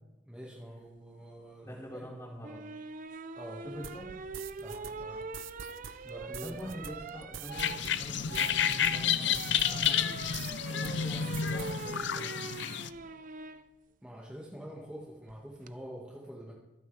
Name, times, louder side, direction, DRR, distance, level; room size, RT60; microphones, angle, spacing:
voice 1, 0.3-2.1 3.4-3.6 4.5-5.3 6.0-6.7 14.0-16.5, equal, 5° right, -4 dB, 1.8 m, -46 dB
voice 2, 1.6-2.7 3.6-4.3 6.4-10.2 10.7-12.5, equal, 15° left, -5 dB, 4.6 m, -45 dB
sound 1, 2.4-13.6 15.3-15.7, right 4 dB, 45° right, 0.6 m, -43 dB
sound 2, 3.8-10.6 10.8-11.8, right 7 dB, 90° right, 0.7 m, -46 dB
sound 3, 7.5-12.9, left 8 dB, 65° left, 0.6 m, -30 dB
25.0 x 9.5 x 3.4 m, 1.0 s
head